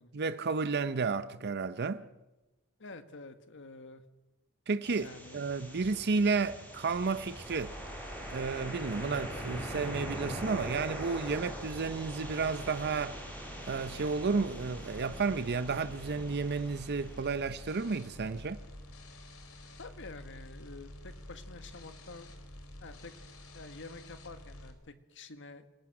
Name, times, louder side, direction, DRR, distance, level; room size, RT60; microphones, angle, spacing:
voice 1, 0.1-2.0 4.7-7.8 8.3-13.2 13.6-18.6, right 4 dB, 50° right, 0.6 m, -32 dB
voice 2, 2.8-4.0 5.0-5.4 19.8-22.3 22.8-23.1 23.5-25.6, left 3 dB, 60° left, 1.7 m, -48 dB
sound 1, 4.8-18.7, right 1 dB, 10° left, 5.8 m, -43 dB
sound 2, 6.9-24.7, left 1 dB, 85° left, 3.3 m, -48 dB
27.0 x 19.0 x 6.0 m
head